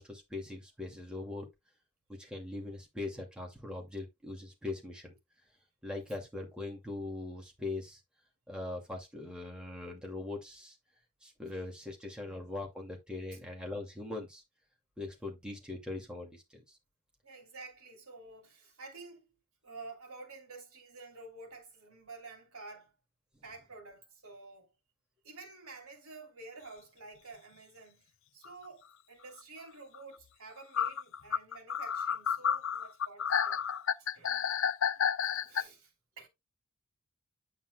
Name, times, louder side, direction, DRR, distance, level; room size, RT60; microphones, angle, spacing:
voice 1, 0.0-1.5 2.2-5.2 5.8-8.0 8.5-10.8 11.2-14.4 15.0-16.6, left 2 dB, 5° right, 2.3 m, -41 dB
voice 2, 17.2-19.2 19.6-22.9 23.4-24.7 25.2-33.6 34.0-34.4 34.9-35.1 35.5-36.3, right 3 dB, 75° right, 3.2 m, -50 dB
sound 1, 28.4-28.5 29.9-30.0 30.7-35.6, left 8 dB, 60° left, 0.5 m, -30 dB
9.0 x 8.5 x 2.3 m
head